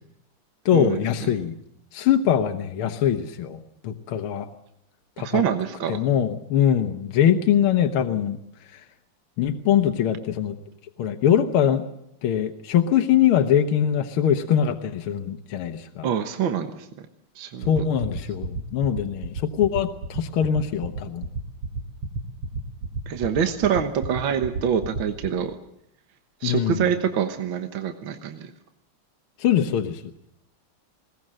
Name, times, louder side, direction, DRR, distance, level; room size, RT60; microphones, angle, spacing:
voice 1, 0.7-1.5 1.9-4.5 5.2-5.4 5.9-8.4 8.7-8.8 9.4-10.6 11.0-11.8 12.2-16.1 17.7-21.3 26.4-26.8 29.4-30.0, left 9 dB, 80° left, 6 dB, 2.0 m, -22 dB
voice 2, 5.2-6.0 16.0-16.9 17.4-17.7 23.1-25.5 26.4-28.5, right 8 dB, 65° right, 7 dB, 1.9 m, -25 dB
sound 1, 17.6-25.3, right 4 dB, 80° right, 3.3 m, -30 dB
21.5 x 18.0 x 7.7 m, 0.77 s
omnidirectional pair, 2.4 m